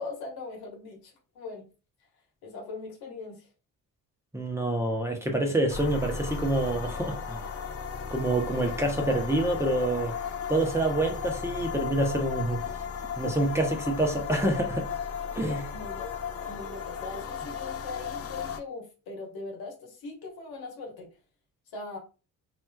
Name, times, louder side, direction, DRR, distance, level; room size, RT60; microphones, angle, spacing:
voice 1, 0.0-1.6 2.4-3.5 15.3-21.1 21.7-22.0, left 3 dB, 85° left, 1.3 m, -40 dB
voice 2, 4.3-7.5 8.1-10.2 10.5-12.8 13.2-14.9 15.3-15.6, right 1 dB, 10° right, 0.8 m, -27 dB
sound 1, 5.7-18.6, left 6 dB, 40° left, 0.5 m, -35 dB
3.1 x 2.8 x 2.2 m
cardioid pair, 75°, 36 cm